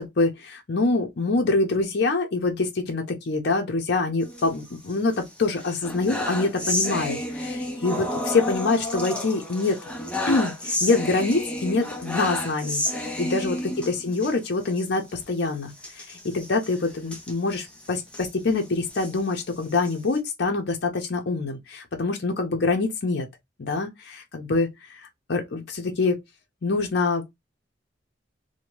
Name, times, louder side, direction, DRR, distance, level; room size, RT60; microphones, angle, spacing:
voice 1, 0.0-9.8 10.3-12.8 13.2-13.6 13.9-23.3 23.6-26.2 26.6-27.2, left 3 dB, 60° left, 0.6 m, -25 dB
sound 1, 4.2-5.2 5.5-14.3 14.7-14.8 15.1-15.2 15.8-18.3 18.8-20.2, left 1 dB, 5° left, 0.6 m, -31 dB
2.7 x 2.1 x 3.0 m
head